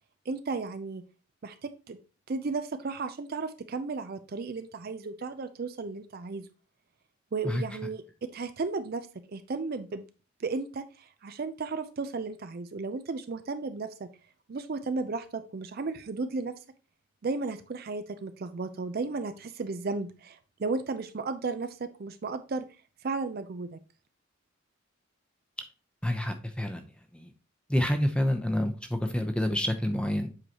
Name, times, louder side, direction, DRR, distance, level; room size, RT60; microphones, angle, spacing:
voice 1, 0.3-1.0 1.4-2.0 2.3-6.5 7.3-10.0 10.4-14.1 14.5-16.6 17.2-22.7 23.0-23.8, right 4 dB, 45° right, 10 dB, 0.4 m, -34 dB
voice 2, 26.0-26.9 27.1-27.3 27.7-30.3, left 1 dB, 5° left, 6 dB, 0.7 m, -28 dB
7.7 x 4.8 x 2.9 m, 0.33 s
head